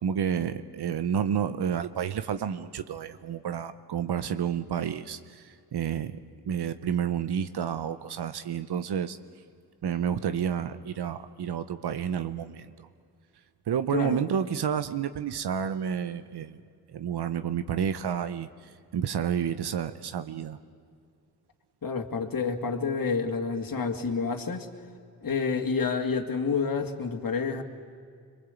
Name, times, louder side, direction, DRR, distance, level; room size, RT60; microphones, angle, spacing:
voice 1, 0.0-6.1 6.5-9.2 9.8-12.9 13.7-16.6 16.9-18.5 18.9-20.6, right 8 dB, 90° right, 11 dB, 0.8 m, -30 dB
voice 2, 21.8-24.7 25.2-27.6, left 5 dB, 60° left, 5 dB, 2.2 m, -29 dB
26.0 x 23.0 x 8.3 m, 2.2 s
cardioid pair, 50°, 38 cm